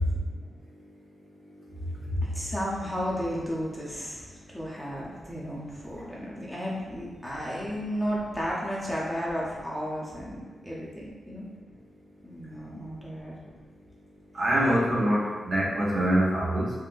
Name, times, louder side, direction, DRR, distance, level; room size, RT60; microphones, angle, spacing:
voice 1, 2.2-11.4 12.2-13.6, equal, ahead, -6 dB, 0.7 m, -33 dB
voice 2, 14.4-16.7, equal, 45° right, -5 dB, 0.6 m, -24 dB
3.7 x 2.1 x 2.5 m, 1.3 s
wide cardioid pair, 110°, 0 cm